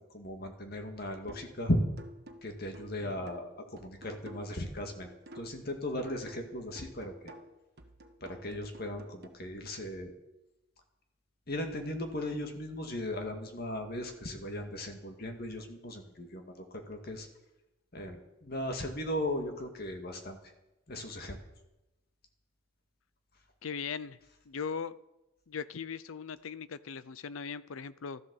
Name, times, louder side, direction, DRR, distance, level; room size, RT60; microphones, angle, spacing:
voice 1, 0.1-1.8 2.4-5.1 5.4-7.3 8.2-10.1 11.5-17.3 17.9-20.4 20.9-21.4, left 1 dB, 50° left, 4 dB, 2.0 m, -37 dB
sound 1, 1.3-1.6 2.0-5.7 6.0-9.3, equal, 50° right, 1.3 m, -52 dB
voice 2, 23.6-24.2 24.5-25.0 25.5-28.2, left 6 dB, 80° left, 17 dB, 0.6 m, -39 dB
13.5 x 12.0 x 7.0 m, 0.96 s
head